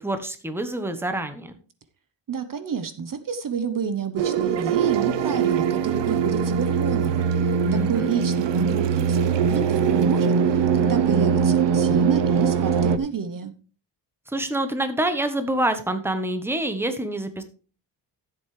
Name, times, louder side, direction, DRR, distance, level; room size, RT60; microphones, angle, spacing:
voice 1, 0.0-1.5 7.6-8.1 14.3-17.4, right 1 dB, 5° right, 9 dB, 1.1 m, -26 dB
voice 2, 2.3-13.5, right 6 dB, 50° right, 11 dB, 0.9 m, -30 dB
sound 1, 4.2-13.0, right 6 dB, 75° right, 0.8 m, -21 dB
13.5 x 7.8 x 3.2 m, 0.37 s
wide cardioid pair, 130°, 44 cm